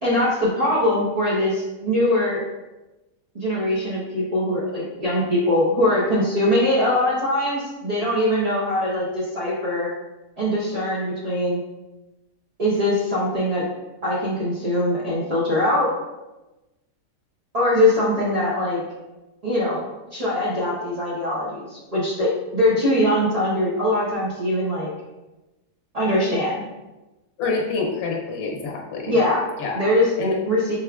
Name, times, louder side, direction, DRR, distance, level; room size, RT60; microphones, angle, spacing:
voice 1, 0.0-2.4 3.3-9.9 10.4-11.6 12.6-13.6 14.0-15.9 17.5-18.8 19.4-19.8 20.1-24.9 25.9-26.6 29.1-29.4 29.7-30.7, left 1 dB, 35° right, -9 dB, 0.7 m, -22 dB
voice 2, 27.4-29.2 29.6-29.8 30.2-30.4, left 3 dB, 65° left, -1 dB, 1.3 m, -26 dB
5.1 x 3.5 x 2.3 m, 1.1 s
omnidirectional pair, 1.7 m